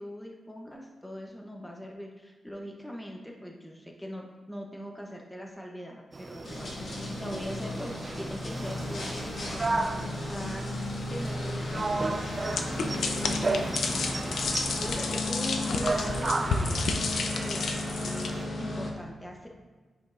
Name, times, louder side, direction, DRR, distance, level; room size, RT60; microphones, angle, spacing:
voice 1, 0.0-10.6 11.1-14.4 14.8-17.0 17.4-19.5, equal, 5° left, 0 dB, 0.9 m, -41 dB
sound 1, 6.1-18.5, right 3 dB, 35° right, 0.4 m, -35 dB
sound 2, 6.4-18.9, left 1 dB, 55° left, 1.5 m, -35 dB
sound 3, 12.5-18.3, left 4 dB, 75° left, 0.6 m, -31 dB
10.5 x 5.2 x 2.5 m, 1.4 s
cardioid pair, 90°, 0 cm